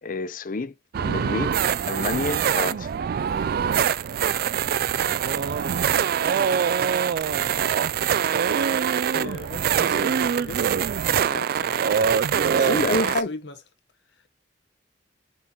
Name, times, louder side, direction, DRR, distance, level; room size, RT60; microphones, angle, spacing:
voice 1, 0.0-0.7 1.0-1.6 1.9-2.9 12.5-13.3, left 3 dB, 50° left, 0.6 m, -28 dB
sound 1, 0.9-13.2, right 8 dB, 55° right, 0.3 m, -23 dB
voice 2, 4.9-7.4 9.1-10.7 11.0-12.2 12.5-13.6, left 2 dB, 70° left, 1.2 m, -40 dB
7.3 x 4.3 x 3.0 m
head